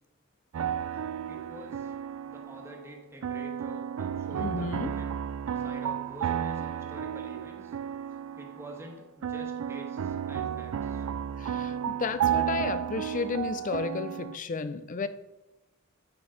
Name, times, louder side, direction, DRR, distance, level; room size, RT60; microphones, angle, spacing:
sound 1, 0.5-2.9 3.2-8.9 9.2-14.4, right 9 dB, 75° right, 0.3 m, -33 dB
voice 1, 1.3-1.9 2.3-5.2 5.6-7.7 8.4-11.0, equal, 10° right, 1.4 m, -47 dB
voice 2, 4.3-5.0 11.4-15.1, left 4 dB, 40° left, 0.4 m, -33 dB
9.1 x 5.3 x 5.0 m
head